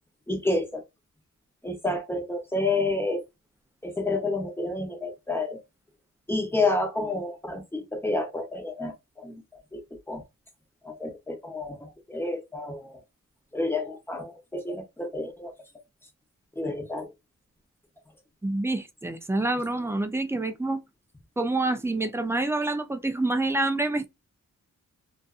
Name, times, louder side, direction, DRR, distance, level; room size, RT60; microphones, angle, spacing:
voice 1, 0.3-0.8 1.6-3.2 3.8-5.6 6.3-10.2 10.8-13.0 13.5-15.5 16.6-17.1, left 2 dB, 5° left, 0.8 m, -30 dB
voice 2, 18.4-20.8 21.4-24.1, right 2 dB, 10° right, 0.4 m, -27 dB
2.5 x 2.4 x 2.4 m
wide cardioid pair, 120°, 33 cm